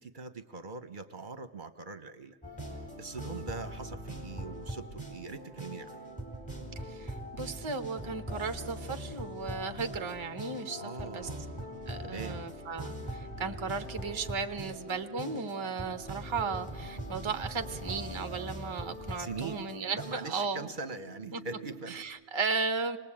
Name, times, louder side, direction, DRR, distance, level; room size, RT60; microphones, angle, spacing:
voice 1, 0.0-2.4 3.0-6.0 10.8-11.5 12.0-12.4 19.2-19.7 19.9-22.0, right 4 dB, 45° right, 11 dB, 1.1 m, -42 dB
sound 1, 2.4-20.3, equal, 5° left, 3.9 m, -42 dB
sound 2, 2.9-22.1, equal, 85° left, 4.4 m, -51 dB
voice 2, 6.8-11.3 11.9-20.7 21.3-21.4 21.9-23.0, right 4 dB, 25° right, 9 dB, 0.9 m, -35 dB
26.0 x 19.5 x 8.7 m, 1.1 s
omnidirectional pair, 1.2 m